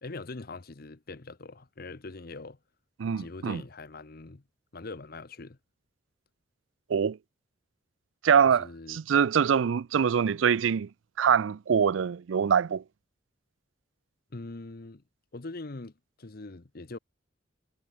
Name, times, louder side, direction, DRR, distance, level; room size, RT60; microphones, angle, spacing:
voice 1, 0.0-2.6 3.2-4.4 4.7-5.6 8.6-9.0 14.3-15.0 15.3-15.9 16.2-17.0, left 3 dB, 50° left, 1.0 m, -42 dB
voice 2, 3.0-3.6 6.9-7.2 8.2-10.9 11.2-12.8, right 7 dB, 90° right, 0.4 m, -24 dB
head